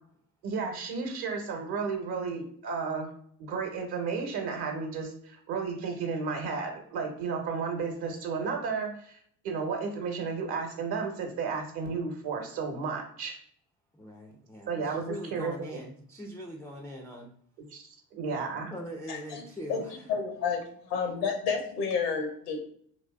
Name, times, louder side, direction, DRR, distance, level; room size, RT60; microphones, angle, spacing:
voice 1, 0.4-3.1 3.4-9.2 9.4-13.4 14.7-15.5 17.7-17.8 18.1-18.7, right 5 dB, 55° right, 3 dB, 1.0 m, -33 dB
voice 2, 13.9-17.3 18.7-20.1, equal, 5° left, 1 dB, 0.3 m, -42 dB
voice 3, 19.1-19.4 19.7-19.8 20.1-20.6 20.9-22.7, left 6 dB, 85° left, 4 dB, 0.8 m, -30 dB
2.9 x 2.6 x 2.3 m, 0.65 s
hypercardioid pair, 55°, 47 cm